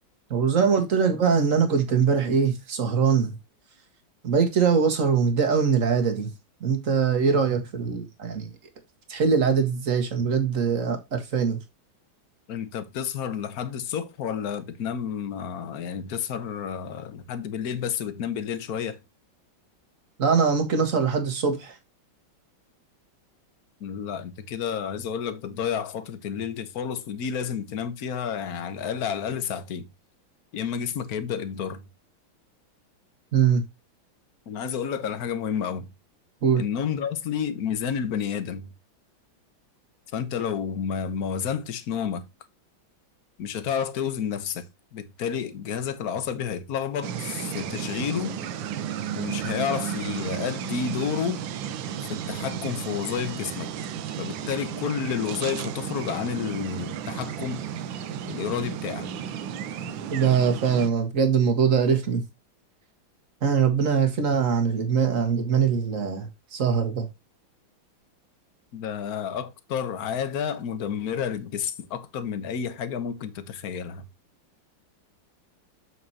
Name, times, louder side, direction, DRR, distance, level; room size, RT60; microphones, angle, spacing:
voice 1, 0.3-3.4 4.2-6.3 6.6-8.5 9.1-11.6 20.2-21.8 33.3-33.6 36.4-36.6 60.1-62.2 63.4-67.1, right 6 dB, 40° right, 2.0 m, -22 dB
voice 2, 12.5-19.0 23.8-29.8 30.5-31.8 34.5-35.9 36.6-38.7 40.1-42.2 43.4-44.7 44.9-48.4 49.1-51.4 52.1-53.7 54.2-57.6 58.3-59.1 68.7-74.0, left 7 dB, 55° left, 1.4 m, -30 dB
sound 1, 47.0-60.9, right 8 dB, 75° right, 1.5 m, -33 dB
7.7 x 6.4 x 2.9 m
omnidirectional pair, 2.2 m